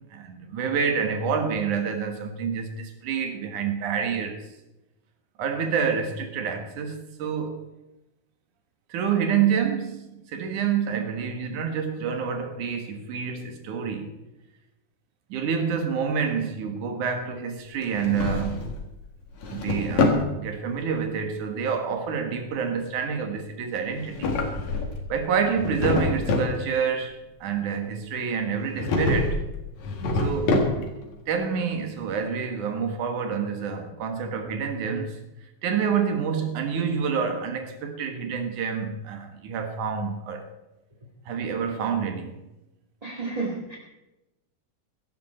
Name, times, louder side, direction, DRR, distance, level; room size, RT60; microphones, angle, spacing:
voice 1, 0.1-4.5 5.4-7.6 8.9-14.1 15.3-18.8 19.5-24.3 25.1-29.4 30.1-30.9 31.3-35.3 35.6-40.5 41.3-42.4, right 6 dB, 90° right, 3.0 m, -28 dB
Drawer open or close, 17.8-18.8 19.2-20.3 23.9-25.1 25.4-26.6 28.7-29.4 29.8-31.0, left 2 dB, 70° left, 3.2 m, -25 dB
voice 2, 43.0-43.8, right 3 dB, 15° right, 1.4 m, -31 dB
16.0 x 13.0 x 4.4 m
omnidirectional pair, 3.4 m